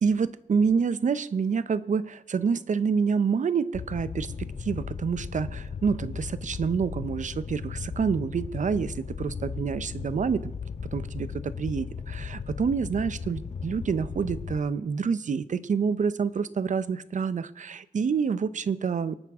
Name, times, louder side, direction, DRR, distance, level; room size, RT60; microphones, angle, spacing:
voice 1, 0.0-10.5 10.9-19.2, right 6 dB, 65° right, 15 dB, 0.7 m, -27 dB
Fire, 3.7-14.6, left 6 dB, 60° left, 0.7 m, -36 dB
24.5 x 9.3 x 3.6 m, 0.88 s
cardioid pair, 55°, 14 cm